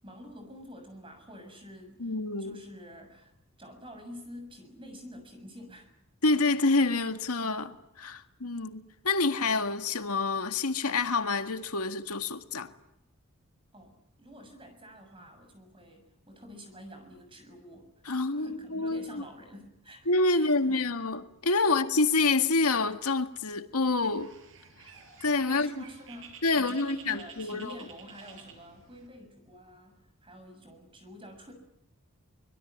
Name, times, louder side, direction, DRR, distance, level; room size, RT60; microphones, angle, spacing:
voice 1, 0.0-2.1 2.4-3.3 3.6-5.9 13.7-17.9 18.3-20.9 25.5-31.5, equal, 25° right, 6.8 m, -48 dB
voice 2, 2.0-2.6 6.2-12.7 18.1-19.2 20.1-24.3 25.2-25.7 26.4-27.8, left 3 dB, 85° left, 1.9 m, -27 dB
Bird, 24.0-29.1, right 6 dB, 60° right, 6.4 m, -51 dB
25.0 x 22.0 x 9.4 m
head